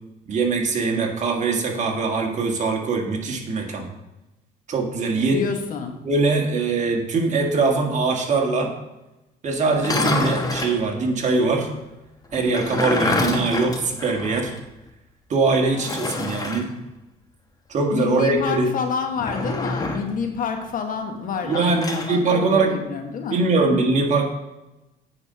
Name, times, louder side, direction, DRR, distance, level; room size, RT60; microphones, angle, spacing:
voice 1, 0.3-3.9 4.7-5.4 6.0-8.7 9.4-11.7 12.3-14.5 15.3-16.7 17.7-18.7 21.4-22.8 23.3-24.3, right 3 dB, 45° right, 2 dB, 1.7 m, -22 dB
voice 2, 5.3-5.9 15.7-16.4 17.9-23.4, left 5 dB, 55° left, 5 dB, 1.3 m, -28 dB
sound 1, 9.7-10.8 12.3-14.6 14.9-15.0 15.8-16.7 19.2-20.1 21.5-22.1, left 2 dB, 20° left, 1.1 m, -26 dB
8.5 x 5.2 x 5.6 m, 0.99 s
cardioid pair, 110°, 17 cm